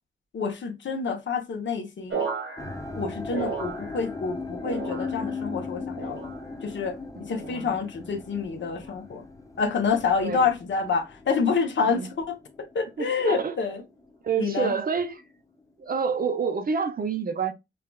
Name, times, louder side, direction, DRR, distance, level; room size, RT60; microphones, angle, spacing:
voice 1, 0.3-2.2 3.0-6.3 6.6-9.2 9.6-12.4 12.7-13.8 14.4-14.7, left 5 dB, 70° left, 0.9 m, -28 dB
sound 1, 2.1-4.3 4.6-5.5 6.0-6.7 7.3-7.7 8.6-9.0 9.9-10.2, right 5 dB, 75° right, 1.4 m, -35 dB
sound 2, 2.6-13.7 14.0-14.6 15.2-15.3, left 4 dB, 15° left, 0.5 m, -38 dB
voice 2, 7.2-7.8 10.2-10.5 11.8-12.1 13.0-13.6 14.2-15.2 15.8-17.5, right 6 dB, 45° right, 0.6 m, -28 dB
5.5 x 2.3 x 2.3 m
wide cardioid pair, 140°, 20 cm